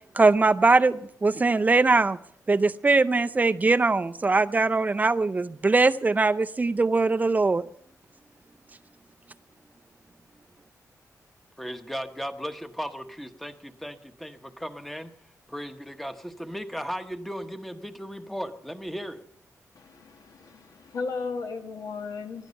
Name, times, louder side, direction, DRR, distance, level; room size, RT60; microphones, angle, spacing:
voice 1, 0.1-2.2 2.5-7.6, right 3 dB, 25° right, 12 dB, 0.5 m, -21 dB
voice 2, 11.6-15.1 15.5-19.2, equal, 5° left, 8 dB, 1.0 m, -36 dB
voice 3, 19.7-22.5, left 4 dB, 75° left, 5 dB, 1.8 m, -35 dB
20.5 x 12.0 x 5.4 m, 0.69 s
wide cardioid pair, 120°, 6 cm